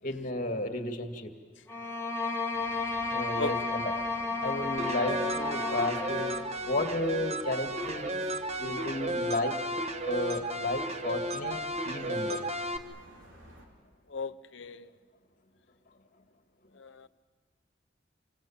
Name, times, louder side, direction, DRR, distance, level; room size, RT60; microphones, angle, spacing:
voice 1, 0.0-1.3 3.1-3.9 4.4-6.3 6.6-8.2 8.6-12.5, left 1 dB, 45° left, 5 dB, 2.1 m, -33 dB
sound 1, 1.7-6.5, left 3 dB, 15° left, 1.6 m, -33 dB
sound 2, 2.5-13.7, right 1 dB, 90° right, 4.2 m, -54 dB
sound 3, 4.8-12.8, right 1 dB, 35° right, 1.2 m, -34 dB
voice 2, 14.1-14.9 16.8-17.1, left 3 dB, 70° left, 12 dB, 0.8 m, -36 dB
28.5 x 25.5 x 7.3 m, 1.5 s
head